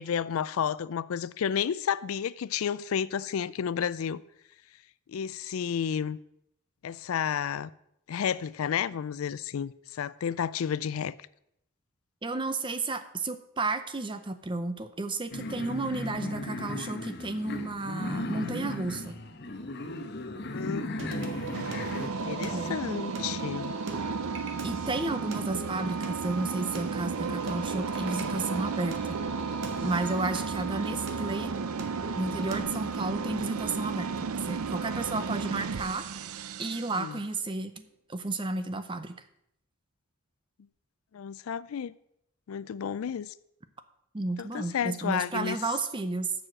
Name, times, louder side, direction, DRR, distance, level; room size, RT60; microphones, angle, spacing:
voice 1, 0.0-4.2 5.1-6.2 6.8-7.7 8.1-11.2 20.5-21.0 22.2-23.8 36.9-37.2 41.1-41.9 42.5-43.3 44.4-45.6, left 8 dB, 80° left, 0.4 m, -31 dB
voice 2, 12.2-19.2 22.5-22.8 24.6-29.2 29.8-31.5 32.1-36.1 36.6-37.7 38.1-39.2 44.1-46.3, right 2 dB, 25° right, 0.6 m, -32 dB
sound 1, 15.3-22.1, left 2 dB, 50° left, 0.9 m, -36 dB
Singing, 21.0-32.6, right 2 dB, 60° right, 1.3 m, -39 dB
sound 2, 21.5-37.2, right 5 dB, 90° right, 0.5 m, -34 dB
7.3 x 6.3 x 7.6 m
head